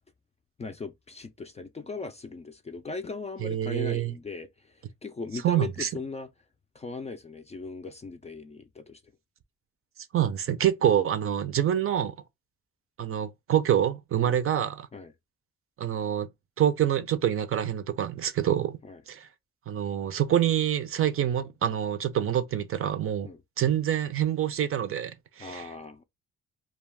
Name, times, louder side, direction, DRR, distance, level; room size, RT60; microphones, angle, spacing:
voice 1, 0.6-6.3 6.7-9.0 14.2-14.4 14.9-15.1 18.8-19.0 23.2-23.4 25.4-26.0, left 4 dB, 20° left, 0.4 m, -38 dB
voice 2, 3.4-4.1 5.4-5.9 10.1-12.1 13.0-14.9 15.8-16.3 16.6-18.8 19.1-19.3 19.7-23.3 23.6-25.7, right 10 dB, 45° right, 0.5 m, -26 dB
2.3 x 2.2 x 3.4 m
cardioid pair, 90°, 30 cm